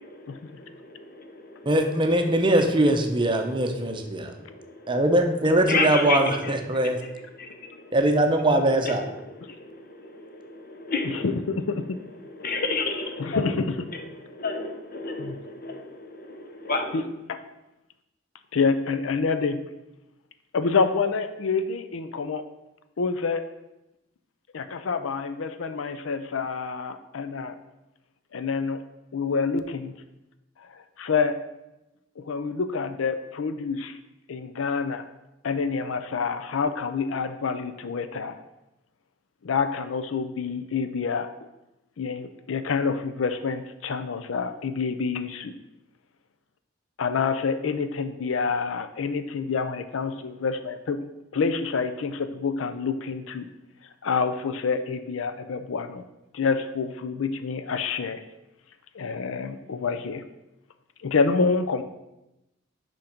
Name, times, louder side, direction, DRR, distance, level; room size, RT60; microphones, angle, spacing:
voice 1, 1.6-4.3 4.9-7.0 7.9-9.1, right 1 dB, 25° right, 4 dB, 0.7 m, -22 dB
voice 2, 5.7-6.2 10.9-11.2 12.4-13.4 14.4-15.8 16.6-16.9, left 3 dB, 50° left, 5 dB, 0.9 m, -27 dB
voice 3, 11.0-11.8 13.2-13.9 15.2-15.4 16.9-17.4 18.5-19.6 20.5-22.4 23.0-23.4 24.5-27.6 28.3-28.8 29.1-29.9 31.0-31.3 32.2-34.0 34.3-35.0 35.4-38.4 39.4-41.3 42.0-45.5 47.0-51.0 51.3-53.5 54.0-56.0 56.3-58.2 58.9-60.2 61.0-61.8, left 5 dB, 85° left, 10 dB, 0.5 m, -27 dB
5.8 x 5.3 x 5.1 m, 0.93 s
head